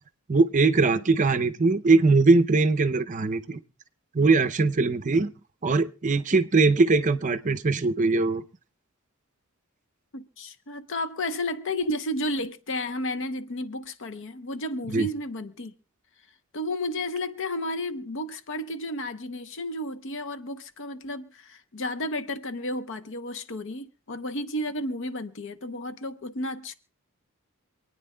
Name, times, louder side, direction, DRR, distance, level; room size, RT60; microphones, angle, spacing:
voice 1, 0.3-3.6 4.1-5.3 5.6-8.4 14.9-15.1, right 3 dB, 35° right, 0.5 m, -21 dB
voice 2, 10.1-15.7 16.5-26.7, left 1 dB, 60° left, 0.8 m, -32 dB
27.0 x 9.3 x 2.2 m
head